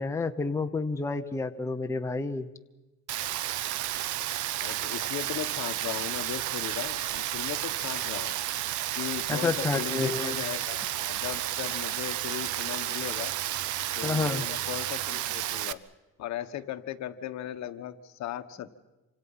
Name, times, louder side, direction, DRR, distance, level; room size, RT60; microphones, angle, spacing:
voice 1, 0.0-2.5 9.3-10.4 14.0-14.5, left 3 dB, 10° left, 6 dB, 0.8 m, -29 dB
Rain, 3.1-15.7, right 13 dB, 60° right, 1.0 m, -32 dB
voice 2, 4.6-8.3 9.0-13.3 14.0-15.8 16.2-18.7, left 11 dB, 55° left, 10 dB, 1.4 m, -37 dB
27.5 x 26.0 x 5.6 m, 1.1 s
cardioid pair, 150°, 34 cm